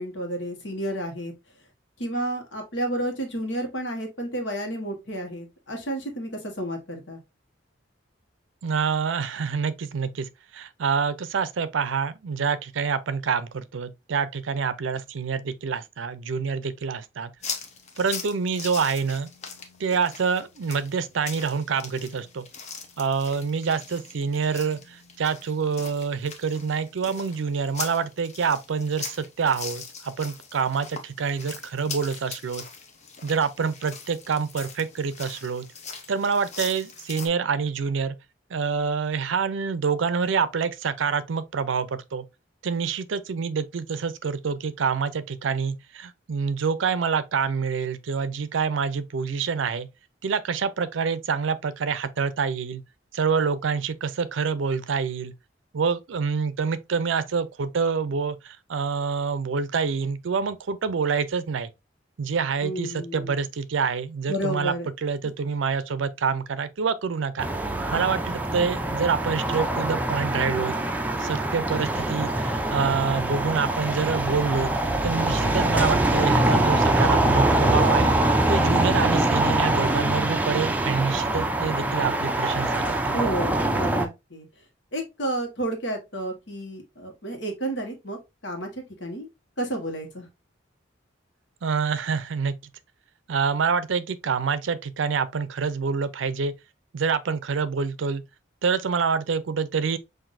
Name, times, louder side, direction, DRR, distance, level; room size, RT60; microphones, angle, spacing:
voice 1, 0.0-1.3 2.0-7.2 62.6-63.3 64.3-64.9 65.2-65.3 83.1-84.5 84.9-88.2 88.4-89.3 89.6-90.3, right 1 dB, 70° left, 1.3 m, -31 dB
voice 2, 8.6-17.3 18.0-19.3 19.8-22.5 23.0-32.6 33.2-35.7 36.1-38.2 38.5-42.2 42.6-49.9 50.2-52.8 53.1-55.3 55.7-61.7 62.2-64.7 65.0-67.5 67.9-70.7 71.2-74.7 75.0-78.1 78.5-83.2 91.6-92.5 93.3-96.5 96.9-98.2 98.6-100.0, right 5 dB, 80° right, 0.5 m, -26 dB
sound 1, 17.4-37.3, left 5 dB, 35° left, 0.7 m, -41 dB
sound 2, 67.4-84.1, right 1 dB, 10° right, 0.4 m, -24 dB
5.8 x 2.6 x 2.5 m
head